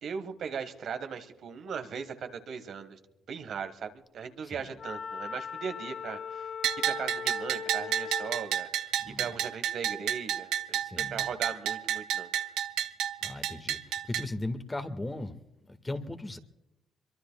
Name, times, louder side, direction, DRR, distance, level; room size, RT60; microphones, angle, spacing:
voice 1, 0.0-3.0 3.3-6.5 6.8-8.7 9.1-12.3, right 6 dB, 65° right, 1.5 m, -38 dB
Wind instrument woodwind instrument, 4.8-8.5, left 7 dB, 50° left, 0.8 m, -39 dB
Bell, 6.6-14.3, right 10 dB, 90° right, 0.7 m, -31 dB
voice 2, 10.8-11.3 13.2-15.4 15.7-16.4, left 2 dB, 20° left, 1.7 m, -37 dB
26.0 x 23.5 x 2.3 m
cardioid pair, 90°, 0 cm